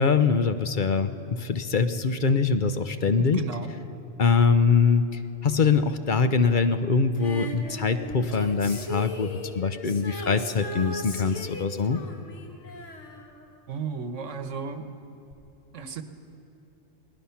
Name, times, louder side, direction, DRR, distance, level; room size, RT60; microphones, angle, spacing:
voice 1, 0.0-3.4 4.2-5.0 5.4-12.0, left 5 dB, 45° left, 9 dB, 0.8 m, -23 dB
voice 2, 3.1-3.7 13.7-14.9 15.7-16.0, right 6 dB, 80° right, 9 dB, 1.5 m, -34 dB
Female singing, 7.2-14.2 15.3-15.4, left 1 dB, 75° left, 2.0 m, -38 dB
28.0 x 19.5 x 5.8 m, 2.7 s
omnidirectional pair, 1.3 m